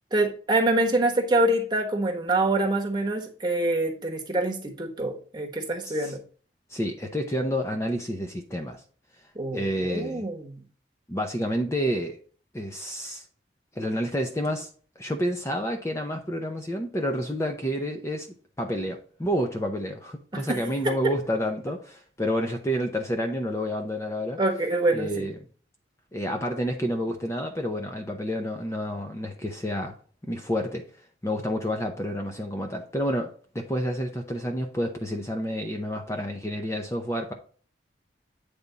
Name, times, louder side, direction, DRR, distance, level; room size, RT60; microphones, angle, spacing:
voice 1, 0.1-6.2 9.3-10.6 20.3-20.6 24.4-25.3, right 2 dB, 25° right, 2 dB, 1.2 m, -25 dB
voice 2, 5.8-6.2 6.7-8.8 9.5-10.2 11.1-12.2 12.5-13.2 13.8-14.7 15.0-18.3 18.6-24.4 24.9-25.4 26.1-29.9 30.2-30.8 31.2-37.3, equal, 15° left, 4 dB, 0.7 m, -29 dB
8.4 x 3.5 x 3.9 m, 0.42 s
head